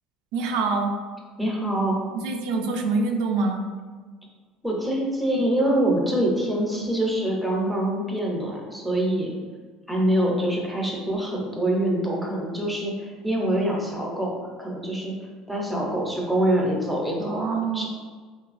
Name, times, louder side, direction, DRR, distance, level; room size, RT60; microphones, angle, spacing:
voice 1, 0.3-0.9 2.1-3.6 17.2-17.9, right 4 dB, 75° right, 3 dB, 0.3 m, -25 dB
voice 2, 1.4-2.0 4.6-9.3 9.9-15.1 15.5-17.9, right 1 dB, ahead, -2 dB, 0.5 m, -25 dB
2.9 x 2.3 x 2.4 m, 1.5 s
cardioid pair, 140°, 0 cm